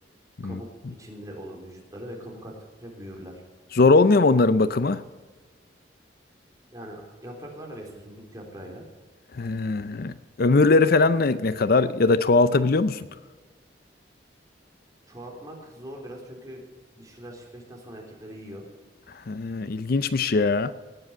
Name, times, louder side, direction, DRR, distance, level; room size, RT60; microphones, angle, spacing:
voice 1, 1.0-2.5 2.8-3.4 6.7-8.8 15.1-16.6 16.9-18.6, equal, 20° right, 3.6 m, -41 dB
voice 2, 3.7-5.0 9.3-13.1 19.3-20.7, left 3 dB, 55° left, 0.5 m, -20 dB
19.0 x 7.8 x 8.2 m
head